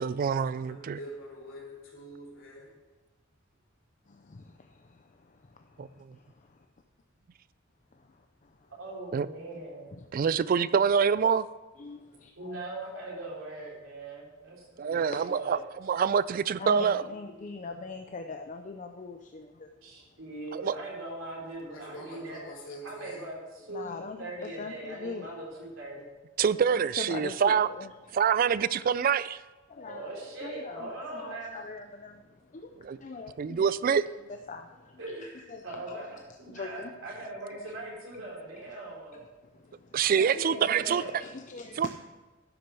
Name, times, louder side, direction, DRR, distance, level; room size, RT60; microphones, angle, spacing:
voice 1, 0.0-1.0 5.8-6.2 9.1-9.3 10.1-11.5 14.8-17.0 20.5-20.7 26.4-27.7 28.1-29.4 32.8-33.0 33.4-34.1 39.9-41.0 41.8-41.9, right 7 dB, 45° right, 18 dB, 0.3 m, -26 dB
voice 2, 0.7-2.8 21.7-23.2, equal, 65° left, -3 dB, 3.7 m, -44 dB
voice 3, 4.1-6.7 7.9-8.7 10.0-10.3 11.8-12.6 14.9-15.0 16.6-19.9 23.7-25.4 26.7-27.9 29.7-33.7 34.5-36.9 39.1-39.2 39.5-41.9, left 3 dB, 35° left, 5 dB, 0.5 m, -43 dB
voice 4, 8.7-9.9 12.4-15.6 19.8-22.4 22.8-26.1 29.8-31.6 35.0-36.1 36.4-39.2 40.1-41.1, right 2 dB, 75° right, -3 dB, 3.7 m, -41 dB
11.5 x 6.3 x 6.2 m, 1.2 s
head